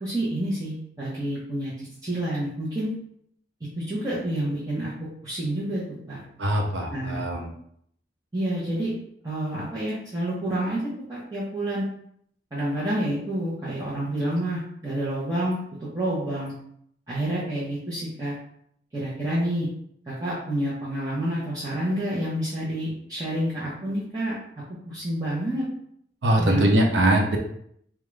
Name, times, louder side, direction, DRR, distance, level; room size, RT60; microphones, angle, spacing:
voice 1, 0.0-1.7 2.0-2.9 3.8-6.2 6.9-7.2 8.3-8.9 9.2-10.8 11.1-11.9 12.5-16.5 17.1-18.3 18.9-19.7 20.1-24.3 24.9-25.6 26.4-26.8, right 1 dB, 20° right, -10 dB, 0.8 m, -28 dB
voice 2, 6.4-7.5 26.2-27.4, right 1 dB, 85° right, 2 dB, 0.6 m, -22 dB
3.6 x 2.4 x 3.2 m, 0.69 s
head